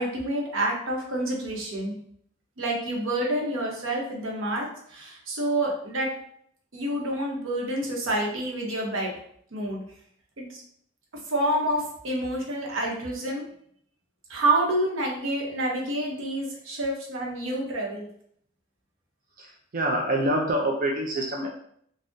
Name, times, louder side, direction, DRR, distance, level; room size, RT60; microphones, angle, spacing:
voice 1, 0.0-1.9 2.6-6.1 6.7-9.1 9.5-9.8 10.4-10.6 11.3-13.5 14.3-18.1, right 1 dB, 80° right, -1 dB, 0.8 m, -28 dB
voice 2, 19.4-21.5, right 1 dB, 45° right, -1 dB, 0.4 m, -26 dB
3.5 x 2.0 x 2.6 m, 0.66 s
head